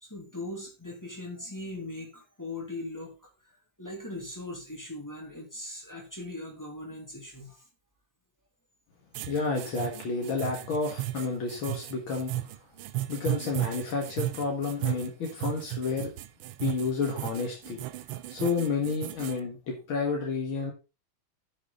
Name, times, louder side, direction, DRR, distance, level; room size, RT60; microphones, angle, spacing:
voice 1, 0.0-7.6, left 2 dB, 10° left, 0 dB, 2.2 m, -40 dB
sound 1, 9.1-19.4, right 15 dB, 85° right, 1.5 m, -35 dB
voice 2, 9.2-12.3 13.1-16.1 16.6-17.8 18.3-20.7, left 4 dB, 75° left, 0 dB, 2.5 m, -30 dB
11.5 x 6.1 x 4.0 m, 0.29 s
omnidirectional pair, 2.3 m